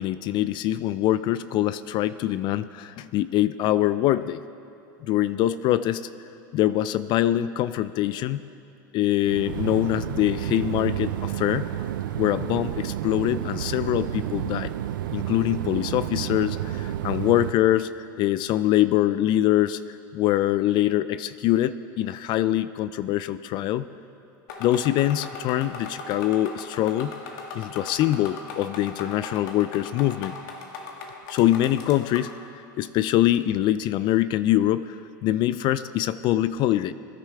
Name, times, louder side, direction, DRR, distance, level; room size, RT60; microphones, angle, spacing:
voice 1, 0.0-4.4 5.0-6.0 6.5-8.4 8.9-11.6 12.2-14.7 15.1-23.8 24.6-27.1 27.5-30.4 31.3-32.5 32.8-36.9, left 13 dB, 45° left, 14 dB, 0.4 m, -24 dB
sound 1, 9.3-17.5, right 12 dB, 85° right, 0.5 m, -30 dB
sound 2, 24.5-32.4, left 4 dB, 70° left, 1.7 m, -39 dB
22.0 x 10.5 x 3.4 m, 2.8 s
hypercardioid pair, 105°, 11 cm